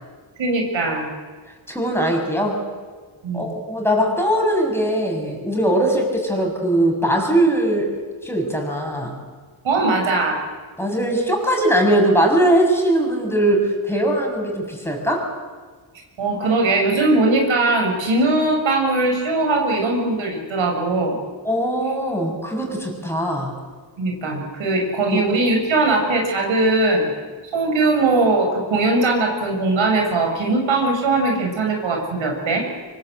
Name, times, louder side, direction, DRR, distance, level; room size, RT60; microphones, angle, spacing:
voice 1, 0.4-1.1 3.2-3.5 9.6-10.4 16.2-21.2 24.0-27.1 27.5-32.7, right 2 dB, 85° right, 1 dB, 7.0 m, -20 dB
voice 2, 1.7-2.6 3.3-9.2 10.8-15.3 21.4-23.5 25.1-25.2, right 1 dB, 5° left, 1 dB, 7.0 m, -20 dB
25.0 x 24.5 x 7.9 m, 1.4 s
cardioid pair, 100°, 46 cm